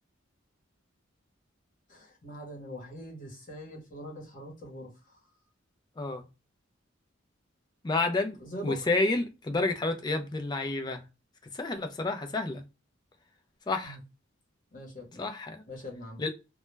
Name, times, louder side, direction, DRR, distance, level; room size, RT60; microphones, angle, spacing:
voice 1, 1.9-5.2 8.4-8.8 13.8-14.0 14.7-15.2 15.7-16.2, left 1 dB, 40° left, 0.8 m, -43 dB
voice 2, 7.8-11.0 11.5-12.6 13.7-14.0 15.2-15.6 16.2-16.3, left 2 dB, 20° left, 0.3 m, -30 dB
2.1 x 2.1 x 3.1 m
head